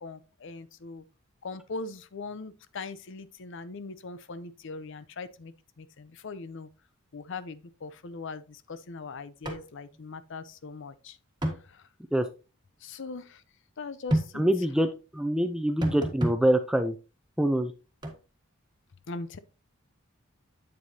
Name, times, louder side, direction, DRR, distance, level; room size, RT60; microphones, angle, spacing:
voice 1, 0.0-1.0 1.4-6.7 7.1-11.2 11.6-11.9 12.8-13.4 13.8-14.4 19.1-19.4, left 4 dB, 60° left, 0.6 m, -40 dB
sound 1, 9.4-9.6 9.9-10.0 11.4-11.6 14.1-14.3 15.8-16.4 18.0-18.2, equal, 20° right, 1.4 m, -28 dB
voice 2, 14.3-16.9 17.4-17.7, right 1 dB, 5° right, 0.5 m, -25 dB
8.3 x 7.6 x 2.7 m
head